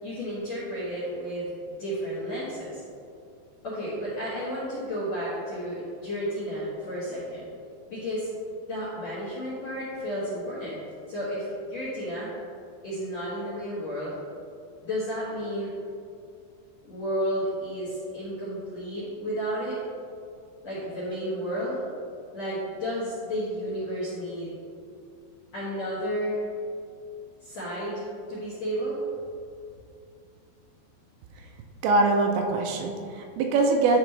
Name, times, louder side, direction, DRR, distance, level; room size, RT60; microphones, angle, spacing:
voice 1, 0.0-1.5 1.8-2.8 3.6-7.5 7.9-8.3 8.7-10.8 11.1-12.3 12.8-14.1 14.8-15.7 16.8-19.8 20.6-21.8 22.3-24.5 25.5-26.4 27.4-29.0, equal, 65° left, -9 dB, 1.7 m, -32 dB
voice 2, 31.8-34.0, right 3 dB, 80° right, 3 dB, 2.7 m, -23 dB
11.0 x 4.1 x 3.3 m, 2.4 s
omnidirectional pair, 5.4 m